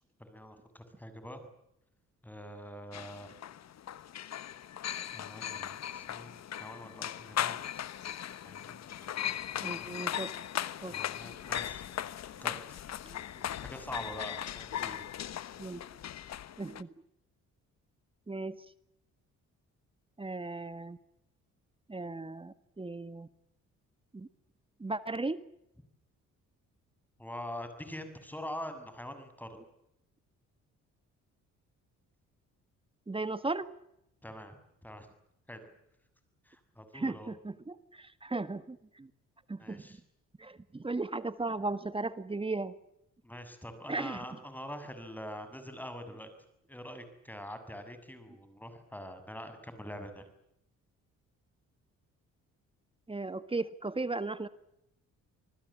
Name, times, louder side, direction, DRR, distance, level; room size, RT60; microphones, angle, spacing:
voice 1, 0.2-1.5 2.2-3.3 5.1-7.8 8.4-10.0 10.9-11.9 12.4-12.6 13.6-15.1 27.2-29.6 34.2-34.6 34.8-35.1 35.5-35.6 36.4-37.3 39.6-40.0 43.2-46.3 46.7-50.3, equal, 5° left, 9 dB, 6.8 m, -45 dB
sound 1, 2.9-16.8, left 10 dB, 60° left, 1.2 m, -38 dB
voice 2, 9.6-10.4 10.8-10.9 15.6-15.8 16.6-16.9 18.3-18.6 20.2-21.0 21.9-23.3 24.1-24.3 24.8-25.4 33.1-33.7 36.9-39.1 39.5-39.8 40.4-42.7 43.9-44.2 53.1-54.5, right 3 dB, 20° right, 13 dB, 1.7 m, -36 dB
28.0 x 20.0 x 8.7 m, 0.80 s
cardioid pair, 90°, 30 cm